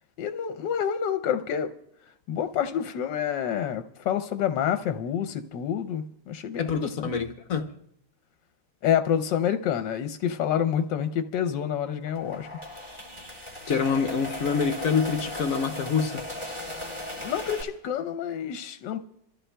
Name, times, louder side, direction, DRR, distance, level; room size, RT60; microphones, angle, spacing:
voice 1, 0.2-1.7 2.3-7.1 8.8-12.5 17.2-19.0, left 9 dB, 80° left, 1.3 m, -28 dB
voice 2, 6.6-7.7 13.7-16.3, left 6 dB, 60° left, 1.1 m, -26 dB
sound 1, 12.0-17.6, left 1 dB, 15° right, 2.8 m, -37 dB
27.0 x 14.0 x 2.2 m
omnidirectional pair, 1.9 m